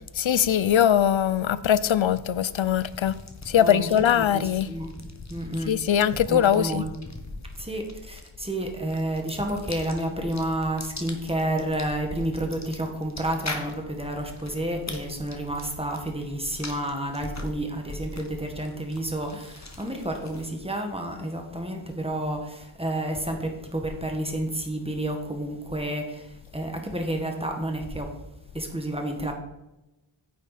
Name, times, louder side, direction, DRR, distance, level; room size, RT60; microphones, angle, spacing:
voice 1, 0.2-3.2 3.5-4.7 5.7-6.8, left 9 dB, 75° left, 0.5 m, -21 dB
sound 1, 2.5-20.7, left 2 dB, 35° left, 1.3 m, -42 dB
voice 2, 3.6-4.9 5.3-5.7 6.3-7.2 7.6-28.1 28.5-29.3, right 1 dB, 10° right, 1.7 m, -30 dB
9.6 x 7.6 x 4.2 m
wide cardioid pair, 60°, 47 cm